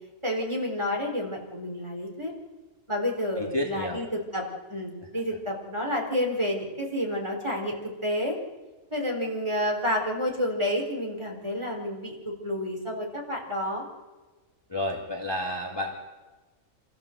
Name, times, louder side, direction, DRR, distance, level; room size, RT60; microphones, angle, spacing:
voice 1, 0.2-2.3 2.9-8.4 8.9-13.8, left 1 dB, 20° right, -1 dB, 4.3 m, -30 dB
voice 2, 3.4-4.0 14.7-16.0, left 1 dB, 15° left, -1 dB, 2.2 m, -30 dB
27.0 x 15.0 x 7.9 m, 1.2 s
omnidirectional pair, 1.5 m